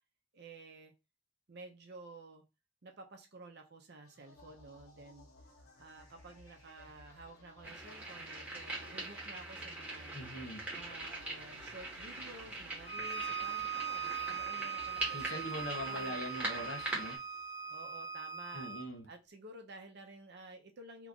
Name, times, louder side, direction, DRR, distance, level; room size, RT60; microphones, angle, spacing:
voice 1, 0.3-0.9 1.5-2.4 2.8-5.3 5.8-10.2 10.7-16.2 17.7-18.7 19.1-21.1, right 2 dB, 50° right, 0.6 m, -52 dB
sound 1, 4.0-17.7, left 1 dB, 75° left, 1.2 m, -58 dB
sound 2, 7.6-17.2, right 2 dB, 5° right, 1.0 m, -42 dB
voice 2, 10.1-10.7 15.1-17.2 18.5-19.1, left 1 dB, 60° left, 0.8 m, -42 dB
Bowed string instrument, 12.8-18.9, right 7 dB, 25° left, 0.5 m, -40 dB
2.9 x 2.4 x 3.5 m
head